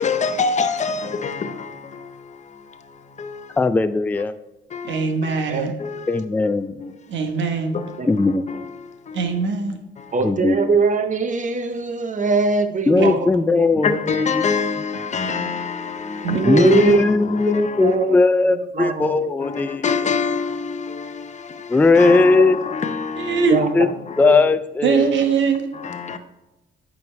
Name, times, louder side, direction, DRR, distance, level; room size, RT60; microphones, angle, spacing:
voice 1, 0.0-3.6 4.7-5.4 5.8-6.2 6.8-6.9 7.7-9.5 10.0-10.2 13.8-18.0 19.2-24.3 25.7-26.2, left 5 dB, 35° left, 0.8 m, -27 dB
voice 2, 3.6-4.3 6.1-6.8 8.1-8.4 10.2-10.6 12.9-14.5 16.5-19.8 21.7-22.6 23.7-23.9 24.2-25.2, left 3 dB, 10° left, 0.3 m, -18 dB
voice 3, 4.8-5.7 7.1-7.8 9.1-9.8 13.0-13.1 16.2-16.4 23.2-23.6 24.8-25.7, right 5 dB, 70° right, 1.2 m, -21 dB
voice 4, 10.1-13.7 16.3-17.1 17.5-18.2 18.5-19.2 22.4-22.5 23.5-23.9 24.2-24.4, right 4 dB, 40° right, 0.7 m, -21 dB
9.0 x 5.5 x 3.2 m
cardioid pair, 90°, 20 cm